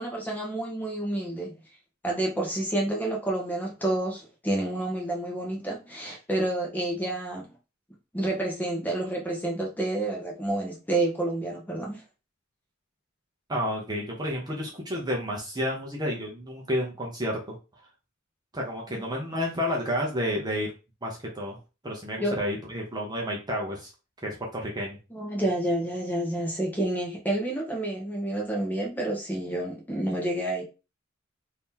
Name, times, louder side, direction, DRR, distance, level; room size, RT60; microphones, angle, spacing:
voice 1, 0.0-1.5 2.0-7.5 8.1-12.0 18.9-19.0 22.2-22.3 25.1-30.6, right 1 dB, 10° left, -1 dB, 1.0 m, -29 dB
voice 2, 13.5-17.4 18.5-20.7 21.0-21.6 21.8-23.9 24.2-25.0, equal, 20° right, -2 dB, 0.8 m, -30 dB
3.0 x 2.8 x 3.7 m, 0.30 s
head